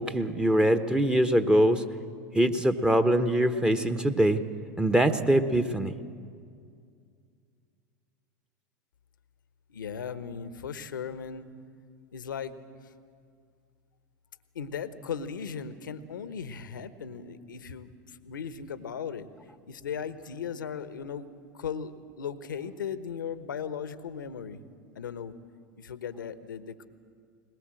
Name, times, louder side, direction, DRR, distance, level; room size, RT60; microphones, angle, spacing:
voice 1, 0.0-1.8 2.3-4.4 4.8-6.0, right 1 dB, 10° right, 8 dB, 1.1 m, -23 dB
voice 2, 9.7-11.5 12.1-12.5 12.8-12.9 14.5-19.3 19.7-21.3 21.5-24.6 24.9-25.3 25.8-26.9, left 7 dB, 85° left, 12 dB, 1.1 m, -37 dB
21.5 x 20.5 x 7.7 m, 2.2 s
hypercardioid pair, 90°, 10 cm